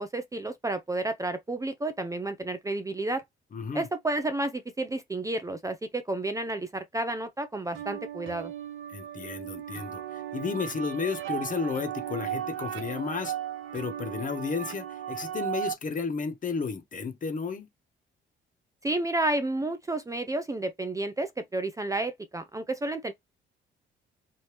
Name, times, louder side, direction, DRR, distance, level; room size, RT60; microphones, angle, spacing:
voice 1, 0.0-3.2 3.7-8.5 18.8-23.1, right 2 dB, 15° right, 0.5 m, -31 dB
voice 2, 3.5-3.9 8.9-13.3 13.7-17.7, left 5 dB, 40° left, 1.1 m, -33 dB
sound 1, 7.7-15.7, right 11 dB, 85° right, 0.7 m, -36 dB
3.3 x 2.8 x 3.0 m
cardioid pair, 90°, 20 cm